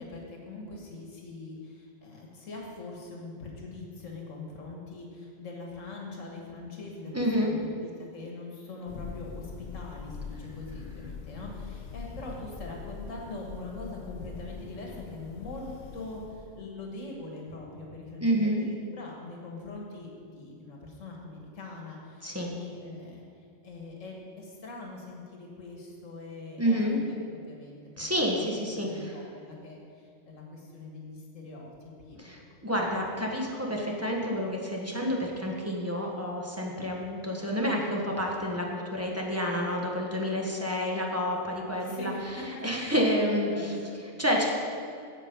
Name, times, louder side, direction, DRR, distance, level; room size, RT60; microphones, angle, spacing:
voice 1, 0.0-28.2 28.7-31.7 32.0-32.2 41.8-43.2 43.5-44.0, left 3 dB, 90° left, -1 dB, 1.8 m, -42 dB
voice 2, 7.1-7.5 18.2-18.6 22.2-22.5 26.6-27.0 28.0-29.1 32.2-42.1 42.6-43.8 44.2-44.5, equal, 10° right, -1 dB, 1.1 m, -29 dB
Thunder, 8.9-16.7, left 5 dB, 65° left, 0.4 m, -43 dB
9.0 x 7.5 x 5.2 m, 2.4 s
omnidirectional pair, 1.3 m